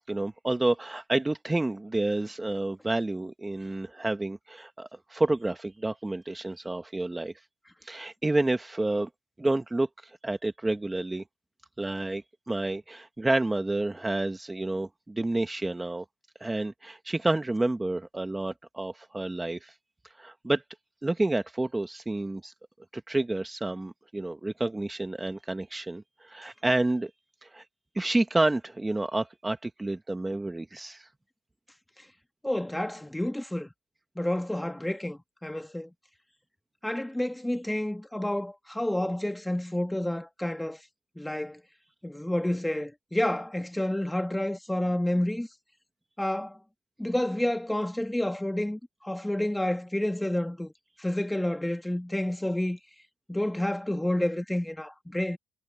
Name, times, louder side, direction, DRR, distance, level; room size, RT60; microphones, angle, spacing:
voice 1, 0.1-7.3 7.8-9.1 9.4-11.2 11.8-16.0 16.4-19.7 20.2-20.6 21.0-22.5 22.9-27.1 27.4-27.6 27.9-31.1, right 2 dB, 15° right, 1.2 m, -29 dB
voice 2, 32.4-33.7 34.2-35.9 36.8-40.8 41.2-41.6 42.0-45.5 46.2-46.6 47.0-50.7 51.0-52.8 53.3-55.4, left 1 dB, 5° left, 1.9 m, -29 dB
cardioid pair, 90°, 0 cm